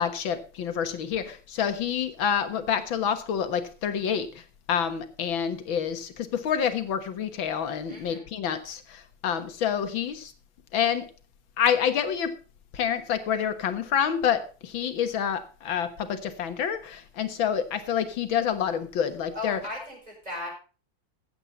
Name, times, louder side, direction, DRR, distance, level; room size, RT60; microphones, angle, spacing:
voice 1, 0.0-10.3 10.7-11.1 11.6-12.3 12.7-19.6, left 8 dB, 80° left, 10 dB, 2.2 m, -28 dB
voice 2, 7.9-8.2 19.3-20.5, left 2 dB, 20° right, -1 dB, 7.0 m, -37 dB
15.0 x 8.8 x 4.0 m, 0.36 s
omnidirectional pair, 2.1 m